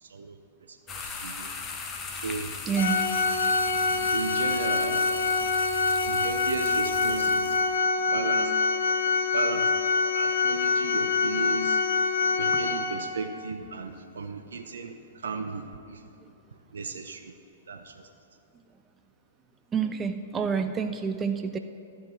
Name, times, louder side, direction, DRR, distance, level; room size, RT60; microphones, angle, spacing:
voice 1, 0.0-0.4 0.7-0.8 1.0-1.5 2.2-2.6 3.7-5.1 6.1-7.6 8.1-8.5 9.3-9.7 10.1-11.8 12.3-14.9 15.2-16.0 16.7-17.3 17.7-17.9, right 4 dB, 75° right, 6 dB, 0.6 m, -35 dB
sound 1, 0.9-7.7, left 4 dB, 25° left, 1.0 m, -39 dB
voice 2, 2.7-3.0 12.5-12.6 19.7-21.6, right 6 dB, 20° right, 7 dB, 0.4 m, -28 dB
Organ, 2.8-13.3, left 4 dB, 75° left, 0.8 m, -25 dB
12.5 x 4.6 x 7.4 m, 2.9 s
figure-of-eight pair, 110°, 0 cm